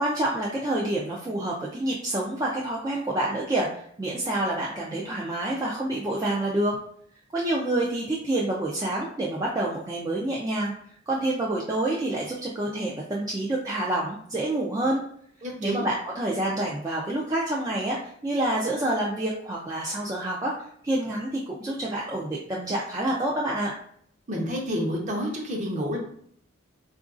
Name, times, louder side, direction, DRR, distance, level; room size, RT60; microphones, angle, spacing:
voice 1, 0.0-6.8 7.3-10.7 11.1-15.0 15.6-20.5 20.8-23.7, right 1 dB, 20° right, -4 dB, 0.3 m, -27 dB
voice 2, 15.4-15.9 24.3-26.0, equal, 35° right, 0 dB, 0.7 m, -29 dB
3.8 x 2.5 x 2.4 m, 0.64 s
head